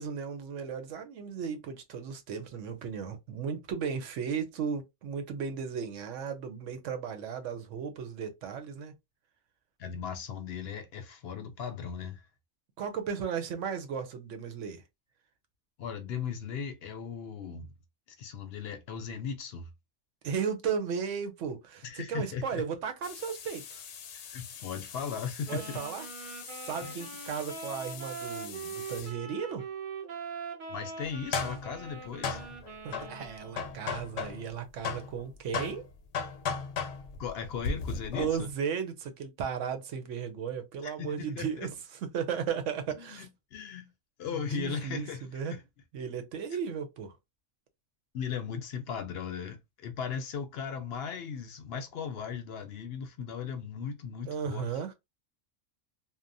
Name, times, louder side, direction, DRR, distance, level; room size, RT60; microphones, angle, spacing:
voice 1, 0.0-8.9 12.8-14.8 20.2-23.8 25.5-26.3 26.6-29.7 32.8-35.9 38.2-41.7 42.0-43.3 44.3-45.1 45.3-45.5 45.9-47.1 54.3-54.9, right 7 dB, 85° right, 1.0 m, -35 dB
voice 2, 9.8-12.3 15.8-17.7 18.2-19.7 21.8-22.6 24.1-25.8 26.8-27.0 30.7-32.4 37.2-38.5 40.8-41.5 43.0-43.3 43.5-43.9 44.2-45.6 48.1-54.7, left 6 dB, 65° left, 0.7 m, -37 dB
sound 1, 23.0-29.1 31.0-34.6 34.8-38.5, left 5 dB, 85° left, 0.9 m, -38 dB
sound 2, 25.4-33.8, right 5 dB, 45° right, 1.0 m, -42 dB
2.8 x 2.0 x 2.5 m
omnidirectional pair, 1.2 m